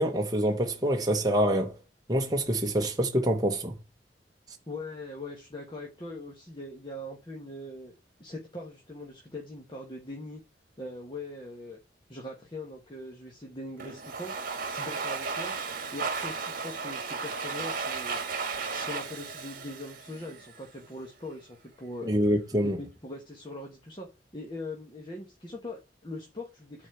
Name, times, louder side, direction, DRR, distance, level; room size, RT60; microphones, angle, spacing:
voice 1, 0.0-1.8 2.1-3.7 22.0-22.8, right 1 dB, 20° right, 1.0 m, -26 dB
voice 2, 4.7-7.9 8.2-10.4 10.8-11.8 12.1-14.3 14.7-15.5 15.9-18.2 18.7-22.1 22.6-24.1 24.3-26.9, left 2 dB, 25° left, 1.5 m, -41 dB
Domestic sounds home sounds, 13.8-20.7, right 4 dB, 50° right, 1.7 m, -34 dB
9.8 x 4.3 x 7.7 m
head